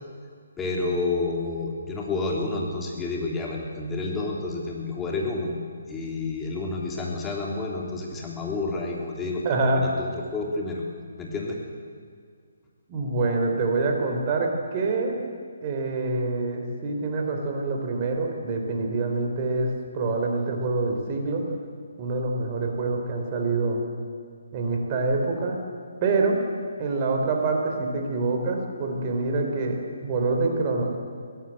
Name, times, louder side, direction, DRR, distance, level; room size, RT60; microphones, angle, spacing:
voice 1, 0.6-5.5 5.9-9.4 9.7-10.8 11.2-11.6, left 3 dB, 10° left, -2 dB, 3.4 m, -29 dB
voice 2, 9.4-9.8 12.9-15.1 15.6-19.7 19.9-21.4 22.0-23.8 24.5-25.6 26.0-26.4 26.8-30.9, right 3 dB, 30° right, 2 dB, 4.1 m, -26 dB
22.0 x 17.0 x 7.9 m, 2.1 s
figure-of-eight pair, 140°, 0 cm